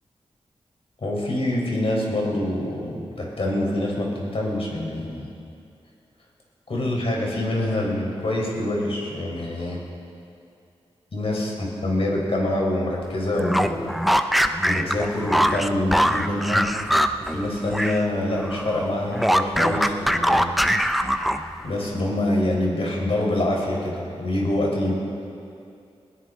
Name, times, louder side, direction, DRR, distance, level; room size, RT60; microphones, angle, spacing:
voice 1, 1.0-5.3 6.7-9.8 11.1-14.0 14.7-16.7 17.2-20.5 21.6-25.0, left 1 dB, 60° left, -2 dB, 4.3 m, -25 dB
sound 1, 13.3-18.1 18.3-21.6, equal, ahead, 0.7 m, -22 dB
20.5 x 16.5 x 3.8 m, 2.5 s
cardioid pair, 60°, 11 cm